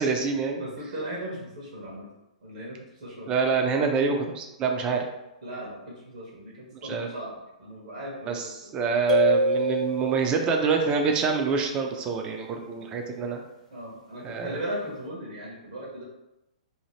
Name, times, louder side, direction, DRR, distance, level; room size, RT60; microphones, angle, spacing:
voice 1, 0.0-0.6 3.3-5.0 6.8-7.1 8.3-8.4 8.7-13.4 14.2-14.6, right 5 dB, 25° right, 3 dB, 0.4 m, -26 dB
voice 2, 0.6-2.1 2.4-3.3 5.4-8.8 10.8-11.0 12.5-12.9 13.7-16.0, right 1 dB, 70° right, -4 dB, 1.0 m, -38 dB
sound 1, 9.1-10.6, equal, 85° left, 0.8 m, -25 dB
2.8 x 2.0 x 3.1 m, 0.92 s
hypercardioid pair, 130°, 4 cm